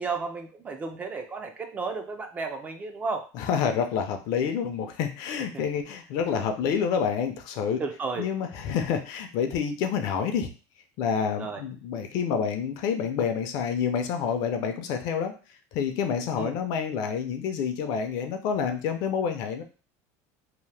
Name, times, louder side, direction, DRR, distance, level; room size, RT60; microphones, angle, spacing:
voice 1, 0.0-3.2 7.8-8.3 11.4-11.6 16.4-16.5, right 4 dB, 20° right, 5 dB, 0.3 m, -33 dB
voice 2, 3.3-7.8 8.2-10.5 11.0-15.3 15.7-19.6, left 7 dB, 55° left, 6 dB, 0.5 m, -28 dB
2.8 x 2.0 x 3.2 m, 0.35 s
cardioid pair, 150°, 8 cm